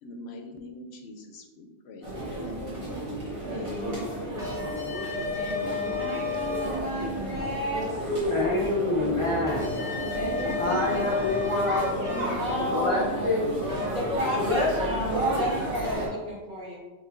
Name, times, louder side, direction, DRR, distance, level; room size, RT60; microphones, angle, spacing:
voice 1, 0.0-2.5 3.5-4.6 10.4-10.6 12.1-13.6, left 2 dB, 85° left, 4 dB, 0.9 m, -40 dB
sound 1, 2.0-16.1, equal, 30° right, 1.4 m, -32 dB
sound 2, 4.4-6.8 9.5-12.2 13.7-13.9 15.8-15.9, left 5 dB, 5° right, 0.8 m, -32 dB
voice 2, 5.3-8.2 10.1-10.8 12.3-13.1 13.9-16.8, equal, 50° right, -5 dB, 1.4 m, -33 dB
voice 3, 8.3-9.7 10.6-11.9 12.7-13.4 14.4-14.7, left 2 dB, 35° left, -4 dB, 0.7 m, -26 dB
5.3 x 3.1 x 2.5 m, 1.2 s
omnidirectional pair, 1.1 m